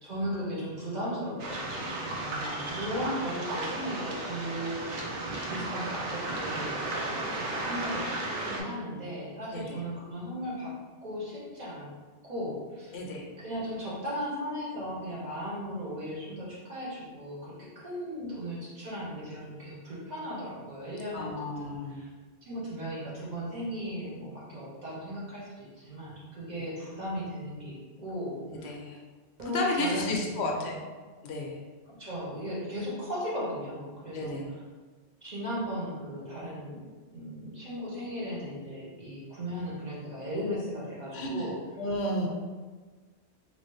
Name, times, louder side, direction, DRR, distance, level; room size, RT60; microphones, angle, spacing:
voice 1, 0.0-4.8 5.5-10.7 11.0-11.9 12.2-12.9 13.4-22.1 22.5-28.7 29.4-30.7 31.8-34.4 35.2-36.8 37.1-41.6, equal, 40° right, -8 dB, 1.1 m, -37 dB
Waves surf, 1.4-8.6, right 2 dB, 90° right, 1.0 m, -34 dB
voice 2, 12.9-13.3 21.1-22.0 28.5-29.0 29.5-30.9 31.2-31.6 34.1-34.5 41.1-41.5 41.8-42.3, left 1 dB, 75° left, 0 dB, 0.8 m, -32 dB
3.1 x 2.8 x 3.1 m, 1.4 s
omnidirectional pair, 1.1 m